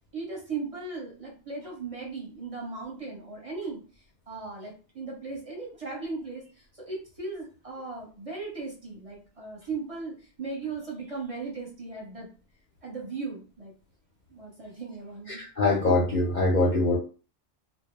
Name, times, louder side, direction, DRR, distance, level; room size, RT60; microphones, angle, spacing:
voice 1, 0.1-3.8 4.3-6.4 6.9-10.1 10.4-12.3 12.8-13.7 14.3-15.4, right 4 dB, 35° right, -2 dB, 0.8 m, -37 dB
voice 2, 15.3-17.0, left 2 dB, 55° left, -2 dB, 0.6 m, -23 dB
2.1 x 2.0 x 3.1 m, 0.37 s
omnidirectional pair, 1.2 m